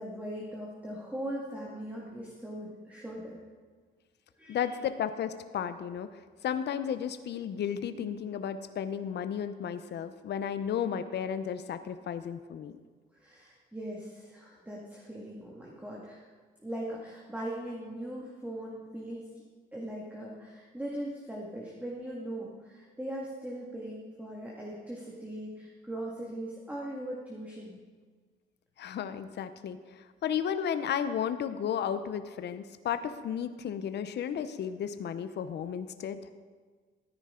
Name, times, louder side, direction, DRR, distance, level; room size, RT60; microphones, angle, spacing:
voice 1, 0.0-3.4 4.4-4.8 13.1-16.3 16.6-19.3 19.7-27.8, right 1 dB, 5° right, -3 dB, 1.9 m, -40 dB
voice 2, 4.5-6.1 6.4-12.7 28.8-36.2, left 8 dB, 60° left, 11 dB, 0.7 m, -33 dB
14.0 x 9.9 x 3.8 m, 1.5 s
cardioid pair, 90°, 20 cm